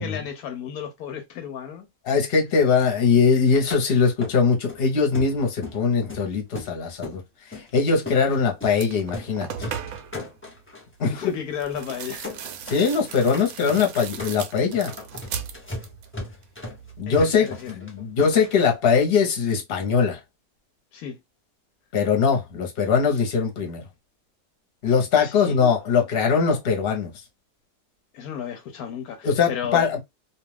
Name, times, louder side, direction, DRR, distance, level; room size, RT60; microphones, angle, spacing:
voice 1, 0.0-1.9 11.0-12.3 17.1-17.8 20.9-21.2 25.1-25.7 28.1-29.9, left 8 dB, 75° left, 1.0 m, -33 dB
voice 2, 2.1-7.2 7.5-9.7 11.0-11.1 12.7-14.9 17.0-20.2 21.9-23.8 24.8-27.1 29.2-30.0, left 5 dB, 45° left, 1.0 m, -21 dB
sound 1, 3.7-3.8 4.2-4.8 5.1-5.8 6.1-7.2 7.5-7.7 8.1-8.2 8.6-8.8 9.0-9.3 9.6-10.8 11.2-11.3 11.6-11.8 12.2-12.8 13.1-18.7, left 2 dB, 15° left, 0.4 m, -37 dB
sound 2, 8.3-8.4 8.7-10.2 11.5-16.1 16.4-17.0, right 8 dB, 75° right, 1.0 m, -37 dB
2.5 x 2.3 x 3.2 m
omnidirectional pair, 1.6 m